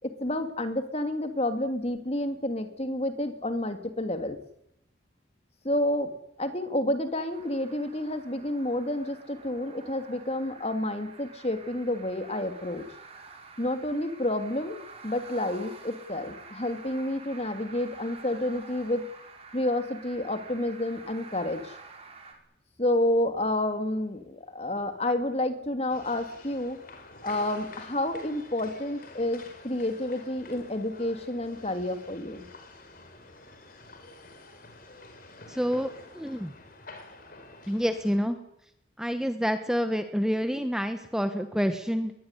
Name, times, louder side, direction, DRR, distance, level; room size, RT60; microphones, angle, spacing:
voice 1, 0.0-4.4 5.6-6.1 6.4-12.8 13.6-14.8 15.0-19.1 19.5-21.7 22.8-26.8 27.2-32.4, left 1 dB, 30° left, 8 dB, 2.8 m, -29 dB
sound 1, 7.3-22.3, right 4 dB, 30° right, 5.3 m, -49 dB
sound 2, 25.9-38.2, left 2 dB, 50° left, 4.7 m, -48 dB
voice 2, 35.5-35.9 36.1-36.5 37.7-38.4 39.0-42.1, equal, 5° right, 8 dB, 1.3 m, -28 dB
21.5 x 21.0 x 9.9 m, 0.76 s
head